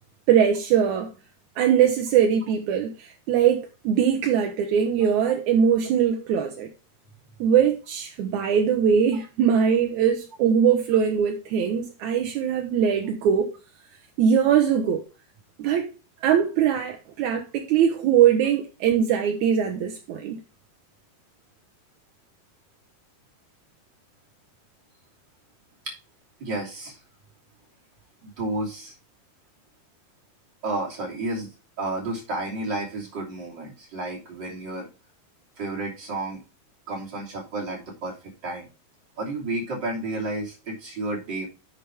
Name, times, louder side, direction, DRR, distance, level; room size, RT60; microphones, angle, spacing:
voice 1, 0.3-1.1 1.6-6.7 7.4-13.5 14.2-15.0 15.6-15.9 16.2-20.4, right 8 dB, 70° right, 1.9 m, -21 dB
voice 2, 26.4-27.0 28.2-28.9 30.6-31.5 31.8-34.9 35.6-36.4 36.9-38.7 39.2-41.5, right 2 dB, 30° right, 3.1 m, -31 dB
9.9 x 6.9 x 3.5 m
omnidirectional pair, 4.4 m